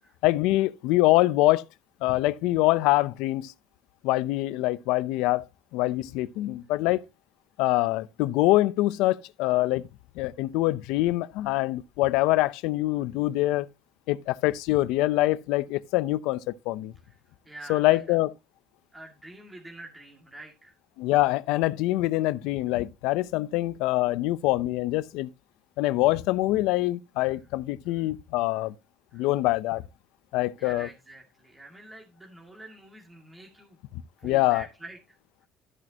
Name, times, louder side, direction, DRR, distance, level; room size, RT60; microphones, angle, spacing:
voice 1, 0.2-1.6 2.0-3.5 4.0-5.5 5.7-7.0 7.6-9.9 10.2-13.7 14.1-16.9 17.7-18.3 21.0-25.3 25.8-28.7 29.1-29.8 30.3-30.9 34.2-34.6, left 18 dB, 90° left, 0.7 m, -24 dB
voice 2, 17.0-18.2 18.9-20.8 27.3-27.5 27.8-28.1 28.5-28.7 29.1-29.3 30.6-33.8 34.2-35.5, right 2 dB, 10° right, 2.3 m, -47 dB
13.5 x 6.3 x 2.9 m
cardioid pair, 125°, 0 cm